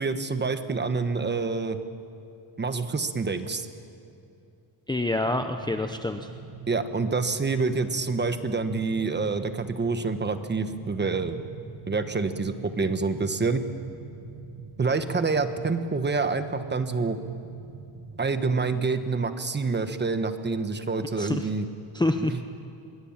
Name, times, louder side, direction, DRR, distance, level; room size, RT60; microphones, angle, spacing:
voice 1, 0.0-1.8 2.6-3.7 6.7-11.4 11.9-13.6 14.8-17.2 18.2-21.7 22.2-22.3, right 4 dB, 20° right, 9 dB, 1.2 m, -27 dB
voice 2, 4.9-6.3 21.2-21.5 21.9-22.3, left 2 dB, 10° left, 6 dB, 0.7 m, -27 dB
sound 1, 5.1-18.5, right 4 dB, 60° right, 7.7 m, -44 dB
25.0 x 22.5 x 7.3 m, 2.7 s
cardioid pair, 135°, 48 cm